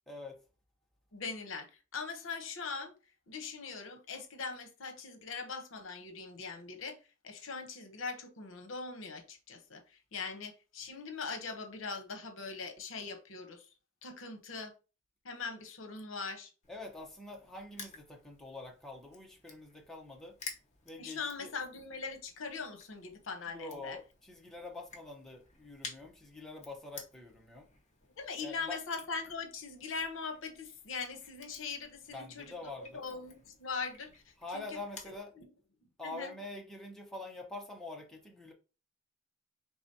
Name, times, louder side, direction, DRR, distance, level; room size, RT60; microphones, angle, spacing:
voice 1, 0.1-0.4 16.7-20.4 20.8-21.5 23.5-27.7 28.4-28.8 32.1-33.1 34.4-35.3 36.0-38.5, left 2 dB, ahead, 0.8 m, -45 dB
voice 2, 1.1-2.9 3.3-7.0 7.2-13.7 14.0-14.7 15.2-16.5 21.0-24.0 28.2-34.6 35.0-35.4 36.0-36.3, left 4 dB, 70° left, 0.8 m, -41 dB
Crushing, 16.6-35.2, left 5 dB, 35° left, 1.0 m, -53 dB
4.8 x 3.5 x 2.7 m
head